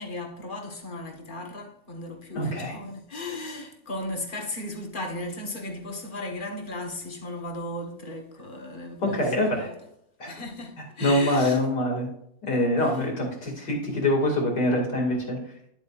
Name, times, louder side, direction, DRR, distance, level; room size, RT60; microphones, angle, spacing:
voice 1, 0.0-9.7 10.3-11.6 12.5-12.6, left 2 dB, 30° left, 1.3 m, -36 dB
voice 2, 2.3-2.7 9.0-9.7 10.2-10.3 11.0-12.1 12.4-15.4, left 1 dB, 55° left, 3.1 m, -24 dB
10.5 x 8.1 x 2.5 m
omnidirectional pair, 2.2 m